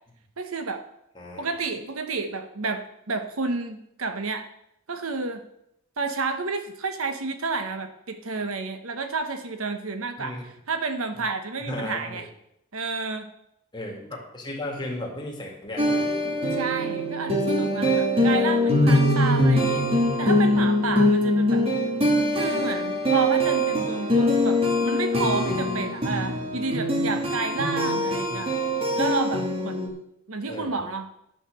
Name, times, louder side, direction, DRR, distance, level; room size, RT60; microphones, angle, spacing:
voice 1, 0.4-0.8 1.4-4.5 4.9-5.5 6.0-12.3 12.7-13.3 16.5-21.7 22.3-28.5 28.9-30.0 30.3-31.1, right 4 dB, 85° right, 8 dB, 1.1 m, -30 dB
voice 2, 1.1-1.5 10.2-10.4 11.7-12.2 13.7-16.1 21.9-22.0 28.3-28.4 30.5-30.8, left 1 dB, 20° left, -1 dB, 2.4 m, -35 dB
sound 1, 15.8-29.9, left 1 dB, 25° right, 2.1 m, -23 dB
10.5 x 5.8 x 6.9 m, 0.77 s
head